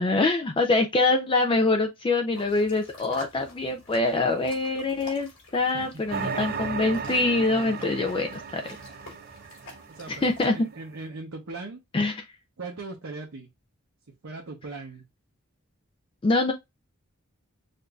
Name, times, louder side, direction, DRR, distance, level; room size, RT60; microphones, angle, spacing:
voice 1, 0.0-8.6 10.1-10.7 11.9-12.2 16.2-16.5, left 2 dB, 25° left, 0.3 m, -24 dB
sound 1, 2.3-10.5, left 2 dB, 60° left, 2.5 m, -48 dB
sound 2, 6.1-10.6, right 5 dB, 45° right, 0.4 m, -35 dB
voice 2, 9.9-11.8 12.6-13.5 14.2-15.0, right 3 dB, 70° right, 0.7 m, -39 dB
6.5 x 2.5 x 2.3 m
head